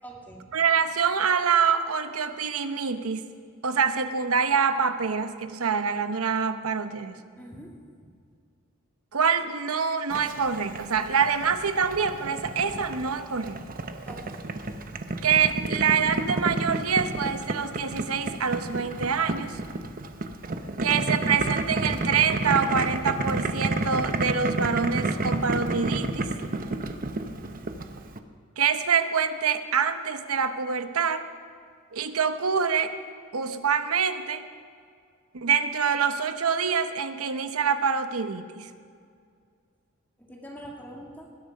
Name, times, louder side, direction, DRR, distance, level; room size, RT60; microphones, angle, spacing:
voice 1, 0.0-0.5 7.4-7.8 14.1-14.4 14.9-15.0 40.2-41.3, right 1 dB, 10° left, -1 dB, 2.0 m, -43 dB
voice 2, 0.5-3.3 3.6-7.2 9.1-13.6 15.2-19.6 20.8-26.3 28.6-31.3 31.9-32.9 33.3-34.5 35.3-38.7, right 6 dB, 80° right, 10 dB, 0.9 m, -25 dB
Boiling, 10.1-28.2, right 2 dB, 40° right, 0.8 m, -30 dB
20.5 x 10.5 x 5.3 m, 2.2 s
head